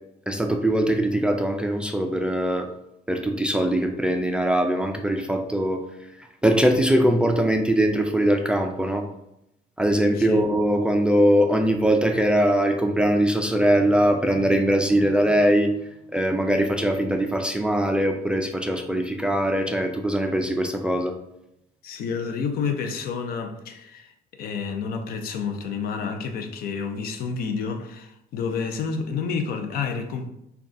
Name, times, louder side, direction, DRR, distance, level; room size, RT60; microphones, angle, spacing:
voice 1, 0.3-2.7 3.1-5.8 6.2-9.0 9.8-15.8 16.1-21.1, right 1 dB, 5° right, 0.3 m, -21 dB
voice 2, 21.8-30.3, left 5 dB, 65° left, 0.5 m, -29 dB
3.8 x 2.3 x 3.6 m
cardioid pair, 110°, 17 cm